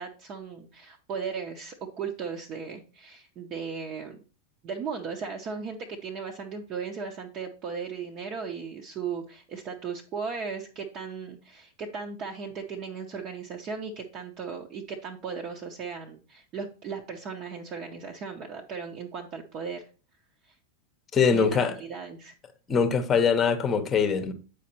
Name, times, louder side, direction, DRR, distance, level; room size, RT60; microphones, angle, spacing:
voice 1, 0.0-4.2 4.6-19.8 21.3-22.3, right 5 dB, 35° right, 0.8 m, -36 dB
voice 2, 21.1-21.7 22.7-24.3, left 6 dB, 20° left, 0.9 m, -23 dB
8.3 x 5.0 x 2.9 m
figure-of-eight pair, 90°, 0 cm